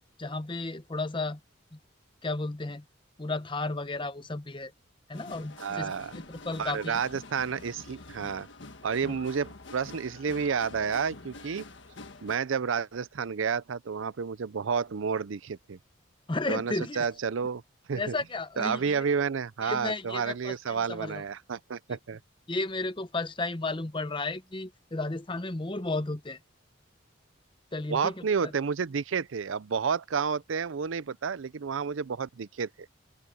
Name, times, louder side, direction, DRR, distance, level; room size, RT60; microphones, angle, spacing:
voice 1, 0.2-1.4 1.7-1.8 2.2-2.8 3.2-4.7 5.1-7.0 9.0-9.1 16.3-17.1 17.9-19.0 19.6-21.2 22.5-26.4 27.7-28.5, left 2 dB, 25° left, 0.8 m, -33 dB
sound 1, 5.1-12.4, left 2 dB, 60° left, 1.6 m, -47 dB
voice 2, 5.6-6.1 6.6-8.5 8.8-11.6 12.2-15.8 16.5-17.6 17.9-18.1 18.6-22.2 27.9-32.7, right 6 dB, 70° right, 0.5 m, -30 dB
open air
head